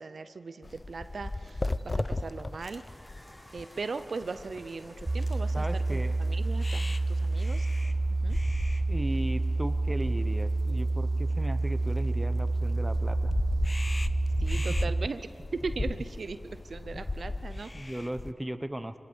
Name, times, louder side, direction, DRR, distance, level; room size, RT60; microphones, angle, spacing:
voice 1, 0.0-2.8 3.5-7.7 8.2-8.4 14.4-15.2 15.5-17.7, right 4 dB, 70° right, 11 dB, 0.7 m, -38 dB
sound 1, 0.6-18.3, left 2 dB, 35° left, 0.6 m, -37 dB
sound 2, 2.6-7.8, equal, 15° left, 4.7 m, -57 dB
sound 3, 5.1-15.1, right 2 dB, 35° right, 0.4 m, -28 dB
voice 2, 5.5-6.2 8.9-13.4 16.9-17.0 17.7-18.9, right 1 dB, 15° right, 10 dB, 1.0 m, -36 dB
25.0 x 20.0 x 7.2 m, 2.5 s
cardioid pair, 60°, 0 cm